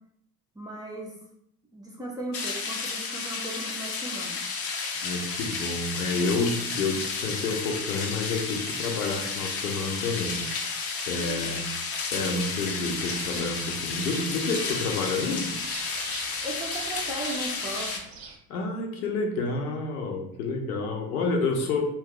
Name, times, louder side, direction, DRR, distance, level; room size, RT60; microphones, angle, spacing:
voice 1, 0.5-1.1 1.7-4.4 11.1-11.6 16.4-18.0, right 1 dB, 10° right, -3 dB, 0.6 m, -37 dB
sound 1, 2.3-18.0, left 4 dB, 30° left, 0.6 m, -32 dB
voice 2, 5.0-10.7 11.1-11.6 12.1-15.5 18.5-21.8, left 3 dB, 70° left, 2 dB, 0.8 m, -29 dB
sound 2, 13.1-18.4, right 5 dB, 50° right, 0.7 m, -43 dB
2.7 x 2.3 x 3.6 m, 0.73 s
figure-of-eight pair, 65°, 45 cm